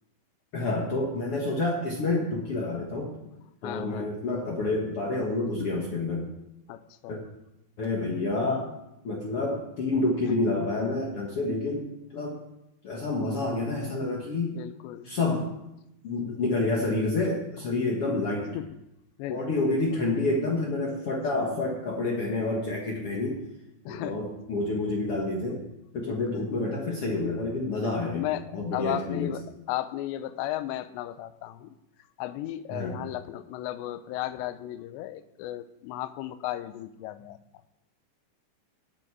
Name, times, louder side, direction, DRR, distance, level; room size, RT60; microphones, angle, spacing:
voice 1, 0.5-3.1 3.6-6.3 7.1-7.2 7.8-8.7 9.0-11.9 12.1-12.4 12.8-14.5 15.0-15.5 16.0-18.6 19.3-23.4 23.9-25.6 25.9-28.3 28.5-29.3 32.7-33.0, left 2 dB, 70° left, -2 dB, 1.3 m, -28 dB
voice 2, 3.6-4.2 6.7-7.2 14.5-15.1 18.5-18.7 19.2-20.0 23.9-24.3 26.0-26.5 27.8-31.7 32.2-37.4, left 13 dB, 85° left, 13 dB, 2.9 m, -35 dB
18.0 x 7.1 x 4.9 m, 0.88 s
omnidirectional pair, 5.1 m